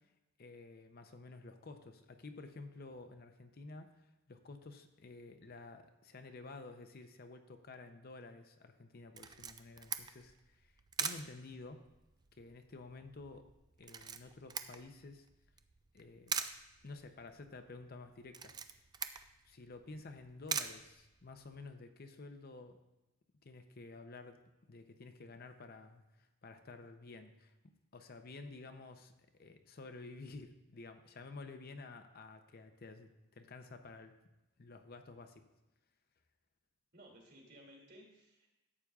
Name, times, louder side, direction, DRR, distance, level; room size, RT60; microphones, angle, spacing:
voice 1, 0.4-10.7 11.0-11.8 12.3-13.5 13.8-15.3 15.9-16.4 16.8-18.9 19.4-22.8 23.4-24.4 24.7-29.1 29.4-34.2 34.6-35.4, left 3 dB, 45° left, 7 dB, 0.6 m, -51 dB
Camera, 9.2-21.6, right 6 dB, 20° right, 0.3 m, -44 dB
voice 2, 36.9-38.5, equal, 50° right, 0 dB, 2.5 m, -58 dB
13.5 x 8.3 x 2.4 m, 1.0 s
head